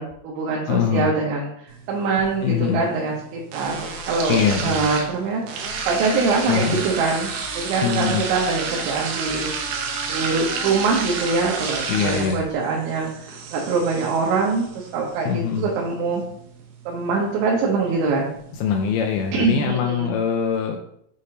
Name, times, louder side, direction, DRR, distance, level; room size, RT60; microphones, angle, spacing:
voice 1, 0.0-1.5 1.9-9.5 10.1-16.2 16.9-18.3 19.3-20.1, right 4 dB, 90° right, -3 dB, 3.4 m, -24 dB
voice 2, 0.7-1.1 2.4-2.8 4.3-4.9 6.5-6.8 7.8-8.2 11.9-12.4 15.3-15.7 18.5-20.8, left 7 dB, 90° left, 2 dB, 2.2 m, -22 dB
sound 1, 1.7-19.7, right 5 dB, 75° right, 2.6 m, -32 dB
6.6 x 6.4 x 2.8 m, 0.70 s
omnidirectional pair, 5.1 m